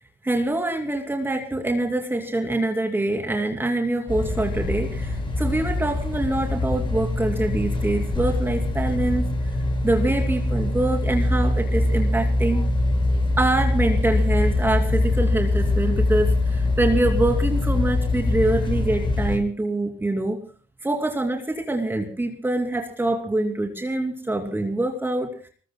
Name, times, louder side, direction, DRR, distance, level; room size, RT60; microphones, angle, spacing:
voice 1, 0.2-9.2 9.8-12.6 13.4-20.4 20.8-25.3, right 2 dB, 15° right, 2 dB, 2.8 m, -25 dB
sound 1, 4.1-19.4, left 2 dB, 30° left, 6.3 m, -23 dB
27.0 x 20.5 x 2.2 m, 0.41 s
cardioid pair, 110°, 17 cm